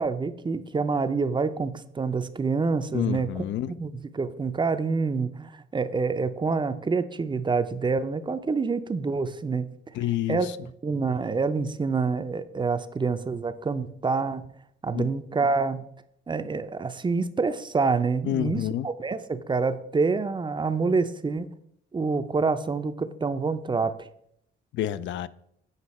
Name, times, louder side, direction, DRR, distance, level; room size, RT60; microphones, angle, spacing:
voice 1, 0.0-3.3 3.8-9.7 10.3-10.5 10.8-14.4 14.8-15.8 16.3-21.5 21.9-23.9, right 4 dB, 25° right, 0.5 m, -27 dB
voice 2, 2.9-3.8 9.9-10.6 14.9-15.1 18.2-18.9 24.7-25.3, left 12 dB, 70° left, 0.4 m, -28 dB
8.1 x 5.2 x 4.2 m
cardioid pair, 90°, 20 cm